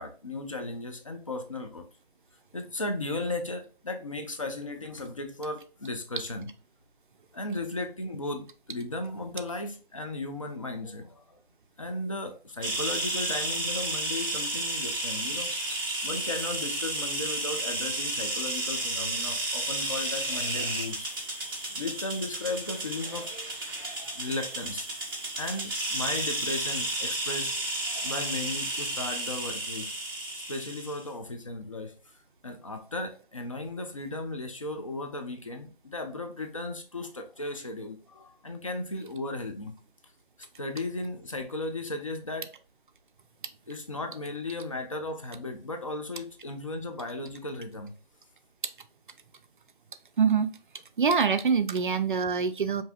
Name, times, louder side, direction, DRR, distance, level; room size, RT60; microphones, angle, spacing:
voice 1, 0.0-1.9 2.5-6.5 7.3-11.4 11.8-21.2 21.7-24.9 25.4-29.9 30.5-31.9 32.4-39.8 40.6-42.5 43.7-47.9, left 2 dB, 35° left, 0.5 m, -36 dB
sound 1, 12.6-31.0, right 2 dB, 25° right, 0.8 m, -32 dB
voice 2, 50.2-50.5 51.0-52.8, right 6 dB, 55° right, 0.5 m, -24 dB
5.4 x 2.7 x 2.3 m
figure-of-eight pair, 160°, 30 cm